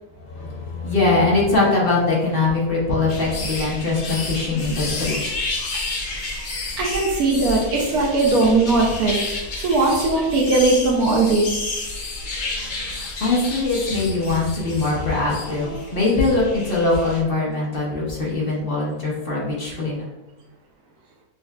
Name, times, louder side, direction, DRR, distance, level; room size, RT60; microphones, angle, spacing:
voice 1, 0.3-5.2 13.2-20.1, left 3 dB, 45° left, -5 dB, 1.0 m, -22 dB
sound 1, 3.1-17.2, left 2 dB, 75° left, 0.4 m, -31 dB
voice 2, 6.8-9.2 9.6-11.8, right 3 dB, 80° right, -2 dB, 1.1 m, -19 dB
6.3 x 2.3 x 2.3 m, 1.0 s
omnidirectional pair, 1.6 m